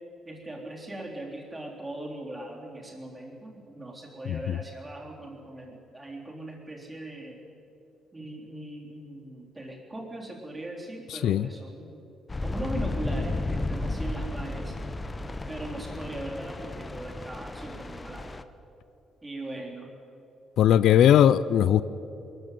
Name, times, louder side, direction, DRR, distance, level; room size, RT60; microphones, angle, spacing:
voice 1, 0.3-7.4 8.1-12.0 12.4-14.8 15.5-18.3 19.2-19.9, right 1 dB, 15° right, -1 dB, 3.7 m, -39 dB
voice 2, 11.1-11.5 20.6-21.8, left 10 dB, 70° left, 16 dB, 0.5 m, -19 dB
sound 1, 12.3-18.4, left 2 dB, 20° left, 0.8 m, -33 dB
22.5 x 14.5 x 9.3 m, 3.0 s
cardioid pair, 145°, 0 cm